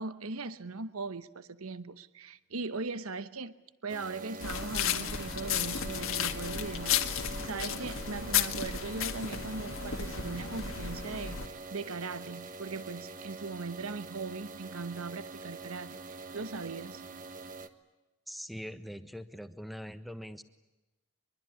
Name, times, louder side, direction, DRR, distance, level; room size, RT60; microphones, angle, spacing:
voice 1, 0.0-3.5 3.8-17.0, right 3 dB, 75° right, 1.1 m, -39 dB
sound 1, 3.9-17.7, right 3 dB, 35° right, 1.4 m, -45 dB
sound 2, 4.4-11.5, left 8 dB, 65° left, 1.8 m, -33 dB
voice 2, 18.3-20.4, equal, ahead, 1.3 m, -42 dB
24.0 x 23.5 x 9.9 m
head